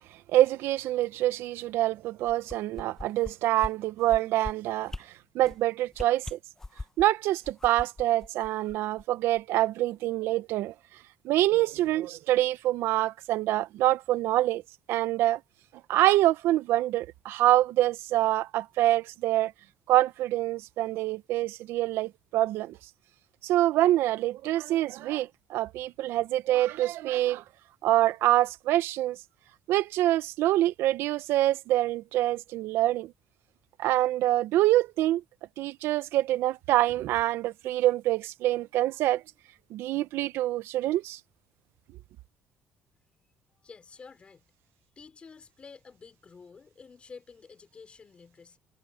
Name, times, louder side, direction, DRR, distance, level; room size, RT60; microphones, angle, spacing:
voice 1, 0.3-4.9 5.3-6.4 7.0-10.7 11.2-14.6 14.9-15.4 15.9-19.5 19.9-22.8 23.4-27.4 27.8-29.2 29.7-33.1 33.8-35.2 35.6-39.2 39.7-41.2, right 14 dB, 80° right, 0.7 m, -25 dB
sound 1, 2.2-3.3 3.6-3.7 4.0-4.5 4.9-5.0 5.4-5.6 5.9-7.0 7.4-9.0 9.4-9.5, left 2 dB, 10° left, 0.9 m, -39 dB
voice 2, 43.6-44.5 45.0-48.6, left 5 dB, 30° left, 3.8 m, -50 dB
cardioid pair, 135°, 4 cm